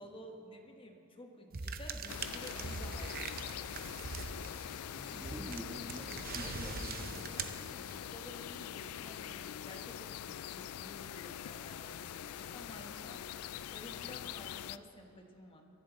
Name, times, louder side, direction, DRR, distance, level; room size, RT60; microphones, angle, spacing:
voice 1, 0.0-3.7 7.4-13.3 13.7-15.6, left 1 dB, 25° left, 3 dB, 1.2 m, -52 dB
sound 1, 1.5-8.2, right 4 dB, 45° right, 0.7 m, -43 dB
sound 2, 2.1-14.8, left 10 dB, 80° left, 0.3 m, -44 dB
voice 2, 4.9-7.5, equal, 15° right, 0 dB, 1.5 m, -46 dB
22.5 x 11.0 x 4.1 m, 2.9 s
head